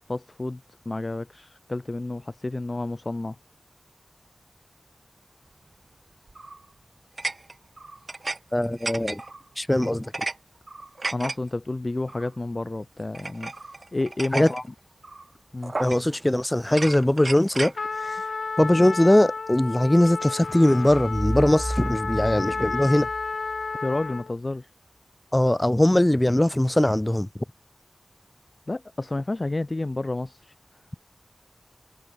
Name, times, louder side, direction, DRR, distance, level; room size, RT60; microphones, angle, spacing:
voice 1, 0.1-3.4 11.1-13.5 13.9-14.6 15.5-15.7 23.8-24.7 28.7-30.5, left 2 dB, 45° left, 2.1 m, -30 dB
sound 1, 6.3-6.6 7.2-8.4 8.6-9.4 9.8-10.4 10.7-11.4 12.1-12.3 13.1-14.6 15.0-15.2 15.6-16.2 16.7-17.8, right 2 dB, 55° right, 2.5 m, -34 dB
voice 2, 8.5-9.2 9.6-10.1 14.3-14.5 15.8-17.7 18.0-18.2 18.6-23.1 25.3-27.3, left 1 dB, 20° left, 0.7 m, -21 dB
Trumpet, 17.7-24.3, left 4 dB, 85° left, 1.3 m, -32 dB
sound 2, 20.9-23.7, right 1 dB, 15° right, 1.3 m, -32 dB
cardioid pair, 40°, 0 cm